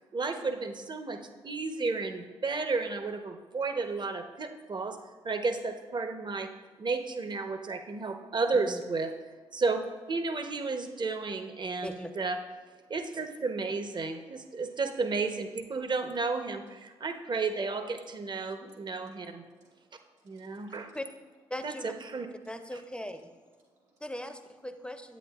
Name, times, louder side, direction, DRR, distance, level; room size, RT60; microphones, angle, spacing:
voice 1, 0.1-5.0 5.2-6.5 6.8-9.1 9.5-12.4 12.9-19.4 20.2-20.9 21.6-21.7 22.1-22.3, right 4 dB, 40° right, 7 dB, 0.8 m, -32 dB
voice 2, 11.8-12.1 13.7-13.8 20.9-21.1 21.5-21.9 22.5-23.3 24.0-25.2, left 1 dB, 10° left, 8 dB, 0.6 m, -39 dB
voice 3, 14.3-14.6 15.7-15.8 16.8-17.1 18.4-21.0 23.6-24.0, right 3 dB, 75° right, -3 dB, 1.4 m, -69 dB
9.3 x 8.5 x 2.4 m, 1.3 s
hypercardioid pair, 45°, 12 cm